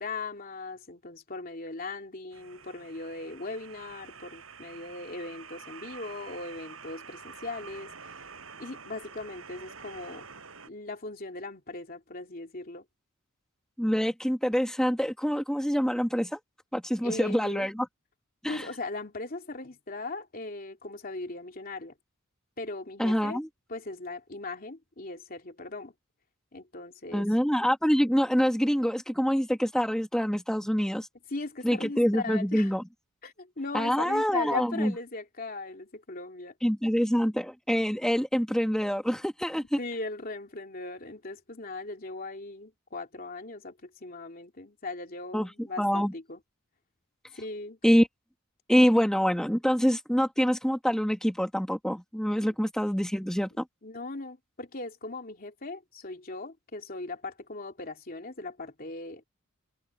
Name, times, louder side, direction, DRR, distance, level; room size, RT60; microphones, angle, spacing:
voice 1, 0.0-7.9 8.6-10.2 10.6-12.8 17.0-17.7 18.5-21.9 22.6-23.4 23.7-25.9 26.5-27.3 31.3-32.7 33.2-36.5 39.8-46.4 47.3-47.8 53.8-59.2, left 3 dB, 45° left, 2.9 m, -38 dB
sound 1, 2.3-10.7, right 5 dB, 80° right, 7.2 m, -47 dB
voice 2, 13.8-16.4 16.7-17.9 18.4-18.6 23.0-23.5 27.1-31.1 31.6-32.8 33.7-34.9 36.6-39.8 45.3-45.5 45.8-46.1 47.8-48.1 48.7-53.6, equal, 5° left, 2.3 m, -26 dB
head